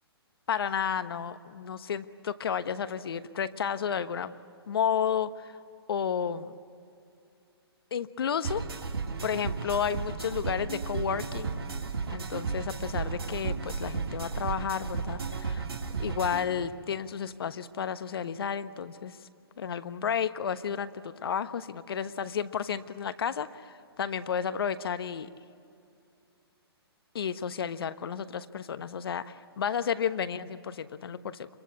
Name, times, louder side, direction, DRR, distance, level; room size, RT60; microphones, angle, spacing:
voice 1, 0.5-4.3 4.7-5.6 5.9-6.6 7.9-8.6 9.2-11.6 12.1-15.7 16.0-19.2 19.6-25.3 27.1-31.5, left 7 dB, 65° left, 12 dB, 1.2 m, -32 dB
sound 1, 8.4-16.4, right 5 dB, 65° right, 3.3 m, -34 dB
26.0 x 23.5 x 8.4 m, 2.5 s
hypercardioid pair, 135°, 13 cm